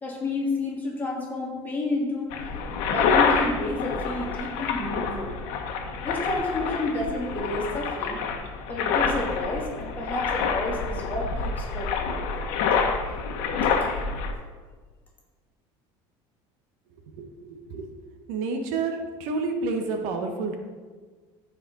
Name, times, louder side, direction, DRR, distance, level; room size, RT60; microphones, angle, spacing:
voice 1, 0.0-2.4 2.9-5.3 6.0-8.2 8.7-12.2 13.6-13.7, left 2 dB, 15° left, -4 dB, 2.7 m, -30 dB
sound 1, 2.3-14.3, left 5 dB, 75° left, 1.2 m, -27 dB
voice 2, 17.1-17.9 18.3-20.6, right 3 dB, 75° right, 4 dB, 1.2 m, -29 dB
14.5 x 5.1 x 4.0 m, 1.4 s
cardioid pair, 140°, 12 cm